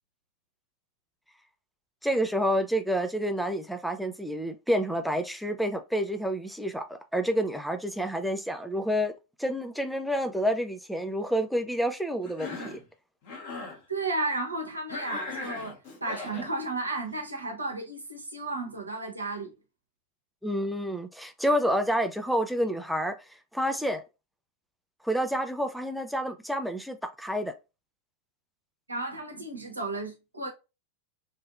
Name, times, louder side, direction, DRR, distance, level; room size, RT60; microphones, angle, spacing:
voice 1, 2.0-9.1 9.4-12.8 20.4-23.2 23.5-24.0 25.0-27.5, equal, ahead, 0.4 m, -29 dB
Cough, 12.2-12.8 13.2-13.8 14.9-16.5, left 3 dB, 50° left, 1.2 m, -38 dB
voice 2, 13.9-19.5 28.9-30.5, right 2 dB, 80° right, 0.8 m, -33 dB
3.1 x 2.6 x 2.4 m
figure-of-eight pair, 90°, 0 cm